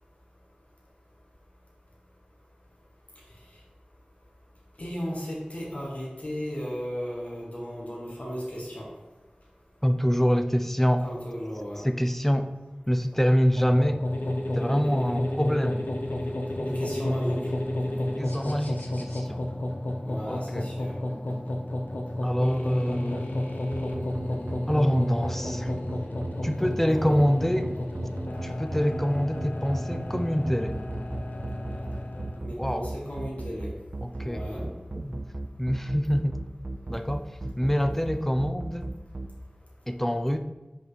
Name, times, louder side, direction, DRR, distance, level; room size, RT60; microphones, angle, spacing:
voice 1, 4.8-8.9 11.0-11.8 16.7-17.5 20.0-21.0 26.9-27.2 32.4-33.7 34.2-34.6, equal, 50° left, -5 dB, 1.8 m, -35 dB
voice 2, 9.8-11.0 11.8-12.5 12.9-14.0 14.6-15.8 18.2-19.4 20.3-20.7 22.2-23.4 24.7-25.7 26.4-27.7 28.4-30.8 32.6-32.9 34.0-35.2 35.6-36.4 36.9-38.9 39.9-40.4, equal, 10° left, 8 dB, 0.5 m, -26 dB
sound 1, 13.6-32.4, left 1 dB, 80° left, 0.7 m, -31 dB
sound 2, 23.7-39.3, right 2 dB, 50° right, 0.5 m, -35 dB
5.3 x 4.4 x 4.1 m, 1.1 s
wide cardioid pair, 45°, 3 cm